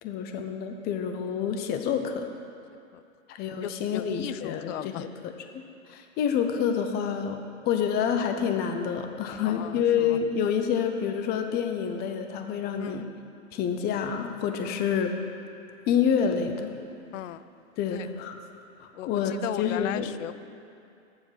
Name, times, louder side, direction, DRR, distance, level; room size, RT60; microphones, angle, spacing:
voice 1, 0.0-2.3 3.3-5.6 5.9-7.4 7.7-13.1 13.5-15.1 15.9-16.7 17.8-18.4 18.8-20.1, left 7 dB, 25° left, 6 dB, 0.6 m, -28 dB
voice 2, 3.6-5.1 9.4-10.2 12.8-13.1 14.6-14.8 17.1-17.4 17.9-18.1 18.9-20.3, left 12 dB, 70° left, 14 dB, 0.5 m, -37 dB
7.4 x 7.3 x 6.2 m, 2.6 s
hypercardioid pair, 125°, 40 cm